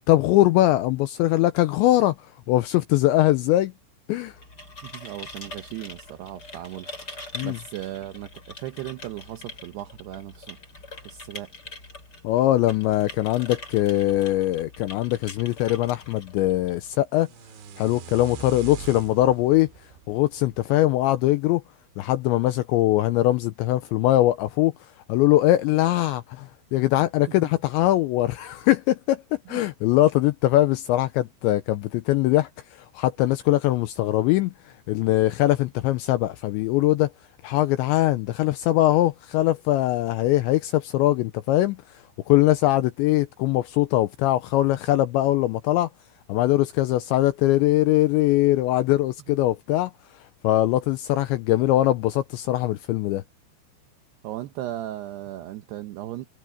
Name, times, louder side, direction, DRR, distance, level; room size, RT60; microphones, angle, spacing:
voice 1, 0.1-2.2 2.5-3.7 4.1-4.3 7.3-7.6 12.2-17.3 17.8-19.7 20.1-21.6 22.0-24.7 25.1-29.2 29.5-34.5 34.9-37.1 37.4-41.8 42.3-45.9 46.3-49.9 50.4-53.2, left 15 dB, 90° left, 2.6 m, -21 dB
sound 1, 4.3-16.9, left 2 dB, 20° left, 5.5 m, -43 dB
voice 2, 4.8-10.6 11.0-11.5 27.4-27.6 29.5-29.6 49.3-49.4 54.2-56.3, right 14 dB, 85° right, 2.3 m, -37 dB
sound 2, 17.1-21.2, right 8 dB, 65° right, 4.8 m, -42 dB
omnidirectional pair, 5.9 m